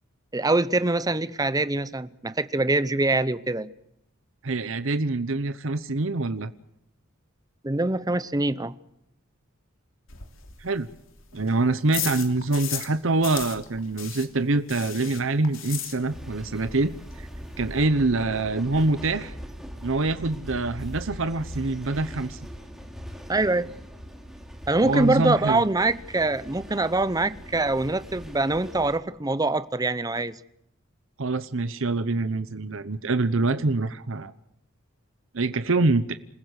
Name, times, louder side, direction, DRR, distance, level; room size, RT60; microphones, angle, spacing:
voice 1, 0.3-3.7 7.6-8.7 23.3-23.7 24.7-30.3, right 2 dB, 15° right, 0.8 m, -24 dB
voice 2, 4.4-6.5 10.6-10.9 11.3-16.9 17.2-17.3 17.6-19.3 19.8-22.4 24.8-25.6 31.2-34.3 35.3-36.1, right 3 dB, 60° right, 0.9 m, -25 dB
sound 1, 10.1-13.0 13.2-16.4 16.7-16.8 17.1-17.2 17.4-17.9, left 10 dB, 65° left, 3.0 m, -35 dB
sound 2, 16.1-29.0, equal, ahead, 3.2 m, -41 dB
27.5 x 15.5 x 8.2 m
head